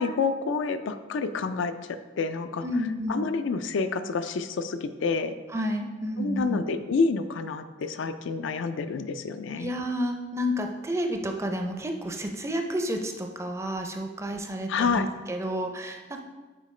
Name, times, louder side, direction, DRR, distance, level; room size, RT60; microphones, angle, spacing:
voice 1, 0.0-1.7 2.2-2.7 3.1-5.4 6.2-9.7 14.7-15.1, left 4 dB, 70° left, 10 dB, 0.4 m, -28 dB
voice 2, 2.6-3.3 5.5-6.6 9.6-16.2, equal, 15° right, 4 dB, 0.4 m, -30 dB
8.7 x 3.7 x 3.2 m, 1.2 s
head